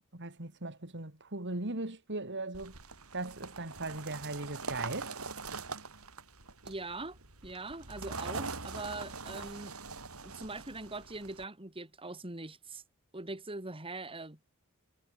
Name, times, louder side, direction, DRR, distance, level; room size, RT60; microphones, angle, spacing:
voice 1, 0.1-2.8 3.1-5.1, right 2 dB, 55° right, 3.2 m, -38 dB
sound 1, 2.5-11.4, right 4 dB, 85° right, 5.8 m, -43 dB
voice 2, 6.7-7.2 7.4-9.7 10.2-12.8 13.1-14.4, right 2 dB, 25° right, 3.2 m, -42 dB
head